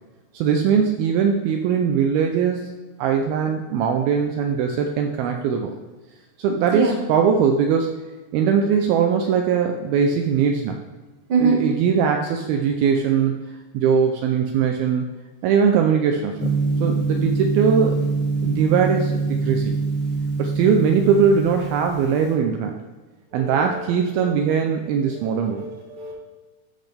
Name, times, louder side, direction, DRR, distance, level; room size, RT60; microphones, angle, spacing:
voice 1, 0.3-5.8 6.4-7.9 8.3-10.8 11.4-13.3 13.7-15.1 15.4-16.4 16.8-18.0 18.4-19.8 20.4-22.8 23.3-25.7, right 6 dB, 80° right, 4 dB, 2.3 m, -20 dB
Gong, 16.4-22.3, right 4 dB, 5° left, 1.7 m, -24 dB
voice 2, 25.2-26.1, right 5 dB, 45° right, -1 dB, 1.9 m, -23 dB
11.5 x 6.3 x 3.4 m, 1.2 s
omnidirectional pair, 4.6 m